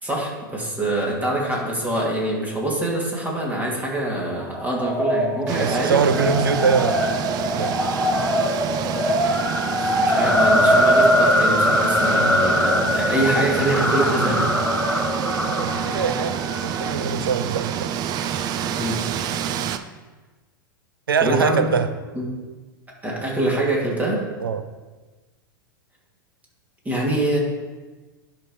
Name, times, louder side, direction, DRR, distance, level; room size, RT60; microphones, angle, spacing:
voice 1, 0.0-6.3 10.0-14.5 18.7-19.0 21.2-21.7 22.1-22.3 23.0-24.2 26.8-27.4, right 1 dB, 15° right, -3 dB, 2.7 m, -24 dB
sound 1, 4.5-16.9, left 1 dB, 5° left, 0.7 m, -22 dB
sound 2, 5.5-19.8, right 9 dB, 35° right, 0.5 m, -28 dB
voice 2, 5.6-7.1 7.6-7.8 15.5-17.9 21.1-21.9 24.4-24.6, right 6 dB, 80° right, 10 dB, 0.7 m, -23 dB
11.0 x 5.8 x 3.3 m, 1.3 s
figure-of-eight pair, 95°, 12 cm